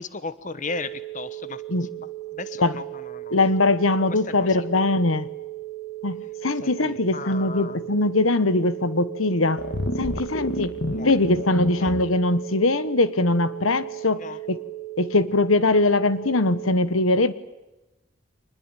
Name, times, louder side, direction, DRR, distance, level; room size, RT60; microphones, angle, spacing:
voice 1, 0.0-1.6 2.0-3.3 4.1-4.5 6.6-7.8 10.9-11.1 11.8-12.0 14.2-14.4, left 3 dB, 40° left, 14 dB, 1.2 m, -36 dB
sound 1, 0.7-16.7, right 17 dB, 15° left, 3.2 m, -37 dB
voice 2, 3.3-5.3 6.0-9.6 9.9-10.7 11.0-14.2 14.5-14.6 15.0-17.3, left 2 dB, 90° left, 15 dB, 1.3 m, -21 dB
sound 2, 9.6-12.0, left 1 dB, 55° left, 1.9 m, -29 dB
25.5 x 20.5 x 9.0 m, 1.0 s
head